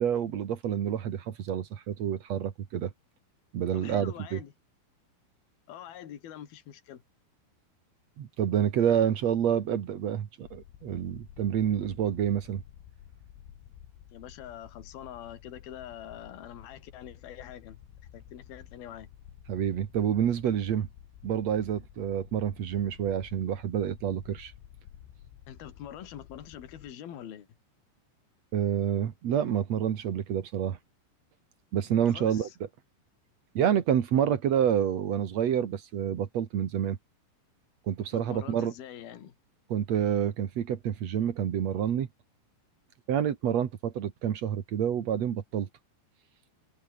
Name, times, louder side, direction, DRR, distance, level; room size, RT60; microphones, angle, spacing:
voice 1, 0.0-2.9 3.5-4.4 8.2-12.6 19.5-20.9 21.2-24.5 28.5-30.8 31.7-32.5 33.5-37.0 37.9-38.7 39.7-42.1 43.1-45.7, right 9 dB, 65° right, 1.7 m, -28 dB
voice 2, 3.7-4.5 5.7-7.0 14.1-17.8 18.1-19.1 25.5-27.5 32.1-32.6 38.1-39.3, left 10 dB, 55° left, 4.2 m, -44 dB
sound 1, 10.4-26.9, left 11 dB, 80° left, 5.0 m, -52 dB
omnidirectional pair, 5.6 m